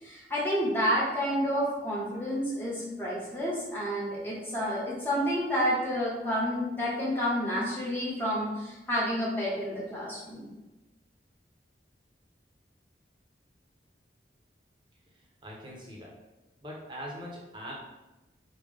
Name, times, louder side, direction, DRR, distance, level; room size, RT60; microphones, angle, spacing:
voice 1, 0.0-10.5, equal, 10° left, -7 dB, 1.3 m, -30 dB
voice 2, 15.1-16.2 16.6-17.7, equal, 25° right, -3 dB, 1.0 m, -42 dB
5.1 x 2.9 x 3.4 m, 1.0 s
head